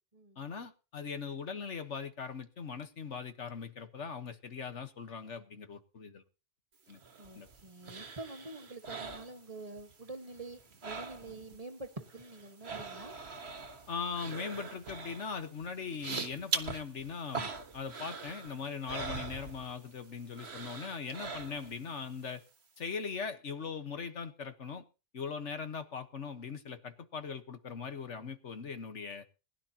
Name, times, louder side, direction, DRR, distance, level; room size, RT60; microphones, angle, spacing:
voice 1, 0.4-6.2 6.9-7.0 7.3-7.5 13.9-22.4 22.8-24.8 25.1-29.2, left 5 dB, 75° left, 1.7 m, -40 dB
sound 1, 6.9-9.9 10.2-11.6 11.8-20.0 20.3-21.9 22.3-22.4, right 4 dB, 60° right, 1.6 m, -42 dB
voice 2, 7.2-13.1, right 2 dB, 30° right, 1.6 m, -46 dB
21.0 x 11.5 x 2.9 m
omnidirectional pair, 1.2 m